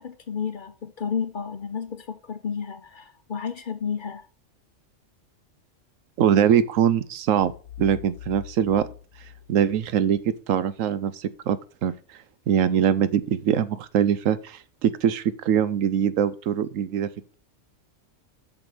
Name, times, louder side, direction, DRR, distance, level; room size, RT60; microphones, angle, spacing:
voice 1, 0.0-4.3, left 6 dB, 45° left, 0.8 m, -32 dB
voice 2, 6.2-7.5 7.8-8.9 9.5-10.2 10.5-11.9 12.5-17.3, right 9 dB, 85° right, 1.1 m, -22 dB
sound 1, 7.4-10.3, left 11 dB, 85° left, 1.1 m, -42 dB
7.3 x 6.1 x 4.9 m
omnidirectional pair, 1.3 m